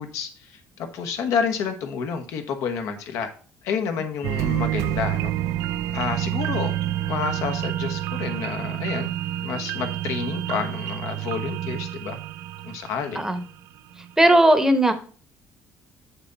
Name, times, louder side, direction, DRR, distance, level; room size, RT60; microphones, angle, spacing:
voice 1, 0.0-3.3 3.6-5.3 5.9-6.7 7.1-9.1 9.4-12.2 12.6-13.2, left 6 dB, 75° left, 6 dB, 1.2 m, -29 dB
sound 1, 4.2-13.6 14.0-14.1, right 13 dB, 85° right, 0.4 m, -28 dB
voice 2, 14.2-14.9, right 1 dB, 10° right, 9 dB, 0.9 m, -17 dB
7.0 x 6.1 x 4.0 m, 0.41 s
cardioid pair, 125°, 5 cm